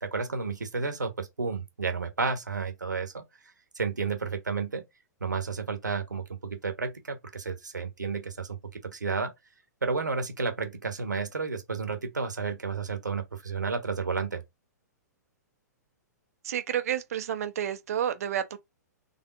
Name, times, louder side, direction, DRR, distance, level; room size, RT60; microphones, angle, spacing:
voice 1, 0.0-3.2 3.7-4.8 5.2-8.6 8.8-9.3 9.8-14.4, right 4 dB, 80° right, 1.2 m, -31 dB
voice 2, 16.4-18.6, right 9 dB, 55° right, 0.7 m, -30 dB
4.1 x 3.5 x 2.5 m
figure-of-eight pair, 110°, 10 cm